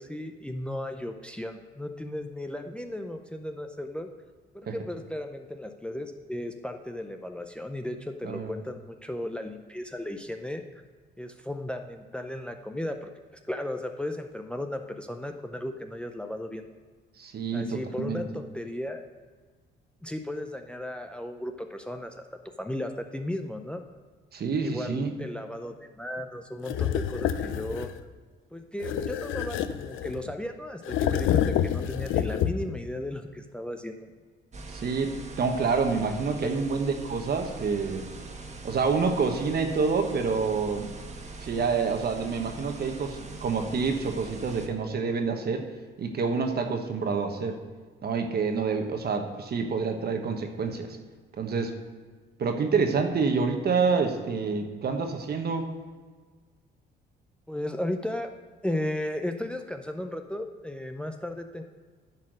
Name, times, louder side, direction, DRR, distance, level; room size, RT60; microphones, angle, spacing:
voice 1, 0.0-4.1 4.5-10.8 11.2-13.1 13.5-16.7 17.5-19.0 20.0-22.2 22.6-23.8 24.6-27.9 28.5-34.0 36.4-36.6 57.5-58.3 58.6-61.6, left 1 dB, 5° left, 6 dB, 0.5 m, -35 dB
voice 2, 17.2-18.2 24.3-25.1 34.7-38.1 38.6-40.9 41.4-45.7 46.0-47.6 48.0-51.0 51.4-51.7 52.4-55.7, right 5 dB, 50° right, 5 dB, 1.2 m, -27 dB
sound 1, 26.7-28.0 28.8-30.3 30.8-32.8, left 10 dB, 80° left, 0.5 m, -28 dB
sound 2, 34.5-44.7, right 3 dB, 35° right, 1.3 m, -42 dB
10.5 x 4.3 x 6.3 m, 1.5 s
cardioid pair, 90°, 20 cm